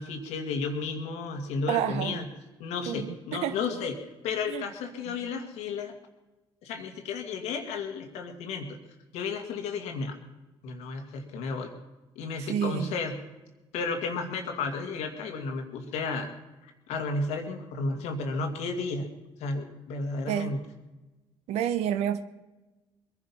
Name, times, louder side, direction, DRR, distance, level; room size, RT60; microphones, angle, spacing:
voice 1, 0.0-2.3 2.6-3.9 4.2-5.9 6.6-8.8 9.1-10.2 10.6-11.7 12.2-13.2 13.7-16.4 16.6-19.1 19.4-20.6, left 4 dB, 80° left, 5 dB, 2.3 m, -33 dB
voice 2, 1.7-2.2 2.9-3.6 4.5-4.7 5.1-5.3 12.4-12.9 20.3-20.5 21.5-22.2, right 10 dB, 80° right, 11 dB, 1.1 m, -30 dB
21.5 x 11.0 x 5.6 m, 1.1 s
supercardioid pair, 60°, 11 cm